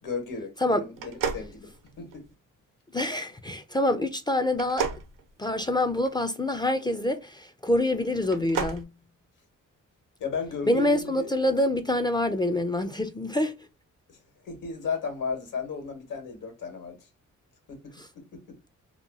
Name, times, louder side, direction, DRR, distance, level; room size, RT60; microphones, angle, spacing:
voice 1, 0.0-2.3 10.2-11.3 14.1-14.2 14.4-17.1 17.7-18.6, left 5 dB, 75° left, 1.3 m, -35 dB
sound 1, 0.9-2.3 4.5-6.1 8.2-8.8, right 6 dB, 80° right, 0.7 m, -33 dB
voice 2, 2.9-4.9 5.4-8.9 10.7-13.6, left 1 dB, 15° left, 0.3 m, -26 dB
2.9 x 2.3 x 2.5 m
cardioid pair, 70°, 32 cm